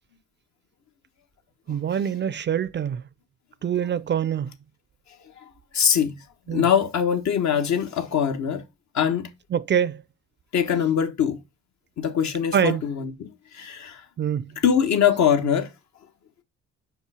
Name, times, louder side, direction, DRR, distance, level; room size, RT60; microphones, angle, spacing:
voice 1, 1.7-3.0 3.6-4.5 6.5-6.7 9.5-10.0 12.5-12.8 14.2-14.5, right 8 dB, 40° right, 0.4 m, -24 dB
voice 2, 5.7-6.1 6.5-8.6 8.9-9.3 10.5-11.4 12.0-13.3 13.5-14.0 14.6-15.7, left 8 dB, 65° left, 1.3 m, -22 dB
5.5 x 4.5 x 4.9 m
cardioid pair, 90°, 30 cm